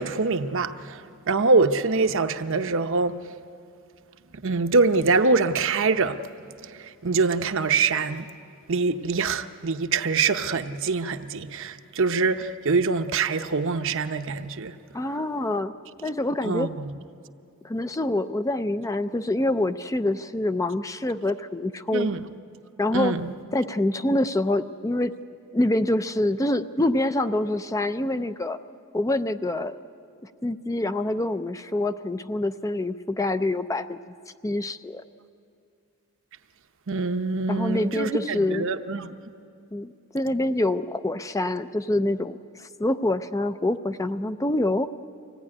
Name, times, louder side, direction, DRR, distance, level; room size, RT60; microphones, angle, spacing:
voice 1, 0.0-3.2 4.4-6.2 6.7-8.3 8.7-14.7 16.4-16.9 21.9-22.2 22.9-23.3 36.9-39.1, right 4 dB, 60° right, 0.8 m, -24 dB
voice 2, 14.9-15.8 16.0-16.7 17.6-22.1 22.8-23.1 23.5-25.1 25.5-28.6 28.9-29.8 30.4-34.1 34.4-35.0 37.5-38.7 39.7-44.9, left 1 dB, 15° left, 0.5 m, -26 dB
25.0 x 17.5 x 9.8 m
head